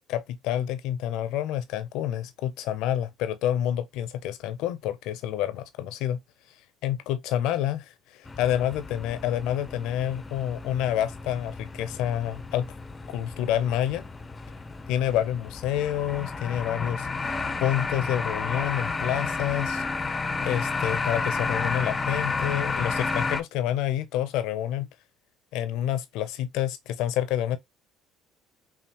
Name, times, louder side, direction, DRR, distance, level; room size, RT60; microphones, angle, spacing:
voice 1, 0.0-6.2 6.8-12.7 13.1-14.0 14.9-17.3 17.6-19.8 20.4-24.9 25.5-27.6, left 11 dB, 70° left, 0.6 m, -28 dB
sound 1, 8.3-23.4, left 4 dB, 25° left, 0.6 m, -32 dB
5.6 x 2.4 x 2.9 m
hypercardioid pair, 65°, 0 cm